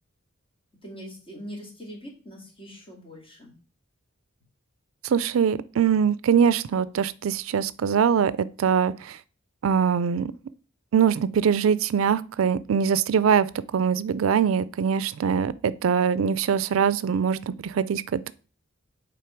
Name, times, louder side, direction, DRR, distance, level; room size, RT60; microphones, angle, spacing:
voice 1, 0.8-3.5, equal, 30° left, 2.4 m, -42 dB
voice 2, 5.0-9.2 9.6-10.3 10.9-13.5 13.7-18.3, right 7 dB, 90° right, 0.4 m, -23 dB
8.4 x 3.7 x 4.5 m
head